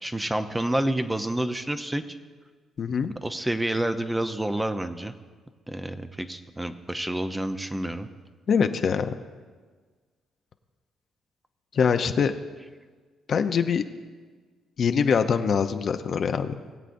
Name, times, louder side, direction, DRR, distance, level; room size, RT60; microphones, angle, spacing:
voice 1, 0.0-2.0 3.2-5.1 5.7-8.1, right 1 dB, 10° right, 8 dB, 0.6 m, -28 dB
voice 2, 2.8-3.1 8.5-9.1 11.7-12.3 13.3-13.8 14.8-16.6, left 6 dB, 55° left, 8 dB, 0.6 m, -23 dB
21.0 x 8.0 x 2.6 m, 1.5 s
cardioid pair, 90°, 0 cm